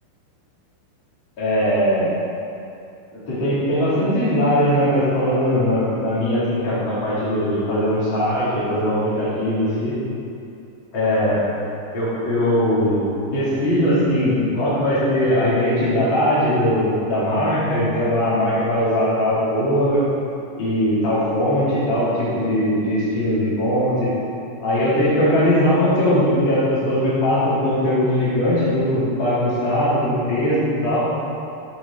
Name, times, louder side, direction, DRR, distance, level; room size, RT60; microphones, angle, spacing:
voice 1, 1.4-2.1 3.3-9.9 10.9-11.4 11.9-20.0 20.6-24.1 24.6-31.1, equal, 35° left, -11 dB, 2.3 m, -20 dB
13.5 x 4.8 x 4.2 m, 2.6 s
omnidirectional pair, 5.2 m